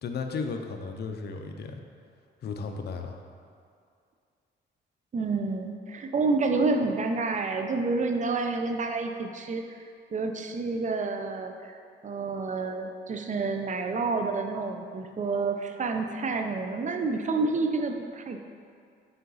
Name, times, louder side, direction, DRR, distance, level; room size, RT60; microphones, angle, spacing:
voice 1, 0.0-1.8 2.4-3.2, left 4 dB, 55° left, 5 dB, 0.6 m, -34 dB
voice 2, 5.1-9.6 10.1-11.7 12.0-18.4, right 3 dB, 40° right, 5 dB, 0.6 m, -29 dB
5.5 x 5.0 x 3.9 m, 2.3 s
cardioid pair, 90°, 20 cm